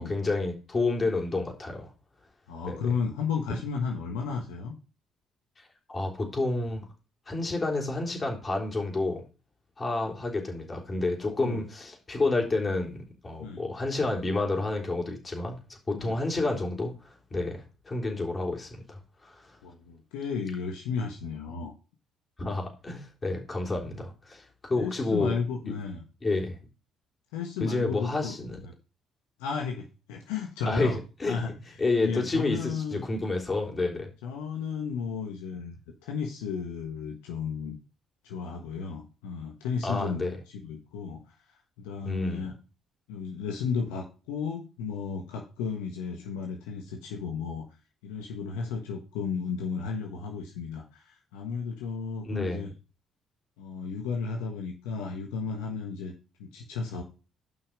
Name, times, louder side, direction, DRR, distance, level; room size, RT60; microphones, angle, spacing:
voice 1, 0.0-1.9 2.7-2.9 5.6-6.9 7.3-9.2 9.8-19.6 22.4-25.4 25.7-25.8 26.2-26.6 27.6-28.6 30.7-34.1 39.8-40.4 42.0-42.5 52.2-52.6, left 2 dB, 30° left, 0 dB, 3.4 m, -30 dB
voice 2, 2.5-4.7 10.0-10.2 11.2-11.6 13.4-13.6 15.9-16.2 19.6-21.7 24.7-26.0 27.3-28.4 28.6-28.7 29.4-31.0 31.3-31.5 32.0-33.0 34.2-37.8 38.2-40.2 40.5-41.2 41.8-42.5 43.1-47.6 48.0-52.7 53.6-56.1 56.4-57.0, left 5 dB, 80° left, 1 dB, 1.3 m, -33 dB
7.6 x 5.7 x 5.2 m, 0.32 s
hypercardioid pair, 50°, 0 cm